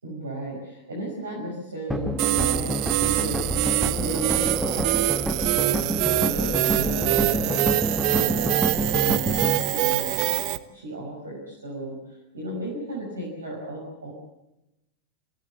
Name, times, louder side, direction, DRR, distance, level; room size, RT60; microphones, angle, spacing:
voice 1, 0.0-3.5 4.0-5.1 5.4-10.3 10.7-14.1, right 1 dB, 75° right, -2 dB, 6.0 m, -34 dB
sound 1, 1.9-9.6, equal, 5° right, 1.7 m, -28 dB
sound 2, 2.2-10.6, right 17 dB, 45° right, 1.1 m, -24 dB
27.5 x 16.0 x 8.2 m, 0.93 s
figure-of-eight pair, 90°, 0 cm